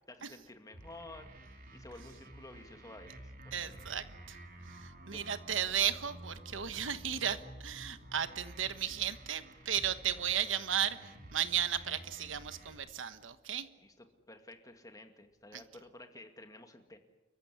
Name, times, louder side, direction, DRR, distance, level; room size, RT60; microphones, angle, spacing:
voice 1, 0.1-1.3 1.7-3.8 5.1-5.2 13.8-17.0, left 2 dB, 20° left, 6 dB, 2.3 m, -52 dB
sound 1, 0.7-12.7, right 1 dB, 50° right, 4.1 m, -51 dB
voice 2, 3.5-4.4 4.7-13.7 15.5-15.6, right 9 dB, 75° right, 12 dB, 1.3 m, -35 dB
29.5 x 15.0 x 10.0 m, 1.1 s
head